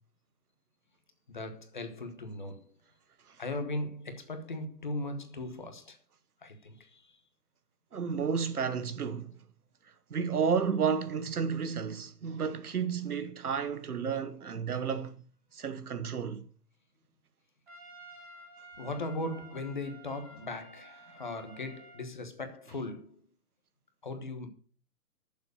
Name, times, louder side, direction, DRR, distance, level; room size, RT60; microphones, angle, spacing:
voice 1, 1.3-2.7 3.4-6.0 6.4-7.2 18.8-23.2 24.0-24.5, left 2 dB, 30° left, 1.2 m, -38 dB
voice 2, 7.9-9.3 10.1-15.2 15.5-16.5, right 6 dB, 65° right, 1.3 m, -32 dB
Trumpet, 17.7-22.1, right 1 dB, 40° right, 4.1 m, -52 dB
10.0 x 7.1 x 6.4 m
hypercardioid pair, 180°, 48 cm